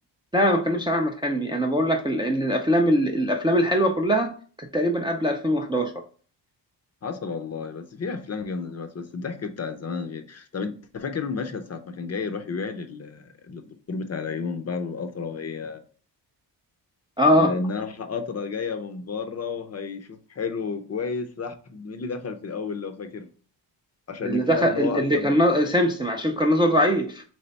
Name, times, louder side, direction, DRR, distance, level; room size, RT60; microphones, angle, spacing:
voice 1, 0.3-4.3 4.6-5.9 17.2-17.5 24.2-27.2, equal, 10° right, 0.3 m, -22 dB
voice 2, 7.0-15.8 17.4-23.3 24.1-25.4, left 5 dB, 35° left, 0.5 m, -32 dB
3.3 x 3.3 x 4.0 m
wide cardioid pair, 130°, 44 cm